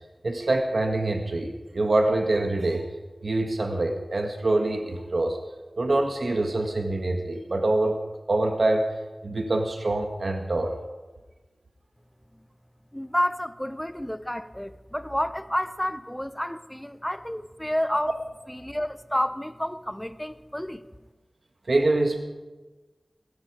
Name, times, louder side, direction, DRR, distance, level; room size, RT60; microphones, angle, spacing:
voice 1, 0.2-2.9 3.2-5.4 5.8-8.0 8.3-8.9 9.2-10.8 21.7-22.2, right 2 dB, 75° right, 1.6 m, -25 dB
voice 2, 12.9-18.2 18.5-20.8, equal, 10° left, 0.8 m, -30 dB
17.0 x 15.0 x 5.0 m
wide cardioid pair, 55°, 0 cm